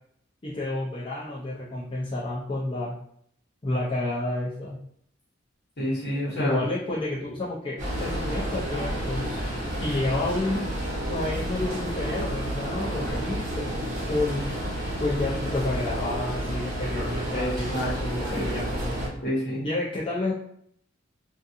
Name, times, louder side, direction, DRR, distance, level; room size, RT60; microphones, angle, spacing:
voice 1, 0.4-3.0 3.6-4.8 6.3-9.4 9.8-10.7 11.1-13.7 14.1-14.5 15.0-19.1 19.6-20.3, left 2 dB, 25° left, -8 dB, 0.5 m, -30 dB
voice 2, 5.8-6.6 17.3-18.5 19.2-19.6, equal, 55° left, -6 dB, 1.3 m, -29 dB
sound 1, 7.8-19.1, right 1 dB, 40° right, 0.9 m, -30 dB
2.5 x 2.4 x 2.6 m, 0.68 s
head